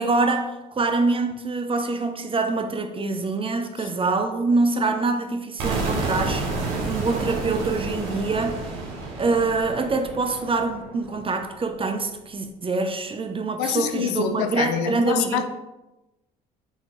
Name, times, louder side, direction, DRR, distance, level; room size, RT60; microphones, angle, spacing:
voice 1, 0.0-8.6 9.2-15.4, right 3 dB, 25° right, 0.6 m, -25 dB
sound 1, 5.6-11.5, right 3 dB, 75° right, 1.0 m, -30 dB
voice 2, 13.6-15.4, left 9 dB, 80° left, 0.4 m, -26 dB
4.4 x 3.7 x 2.9 m
hypercardioid pair, 55°, 20 cm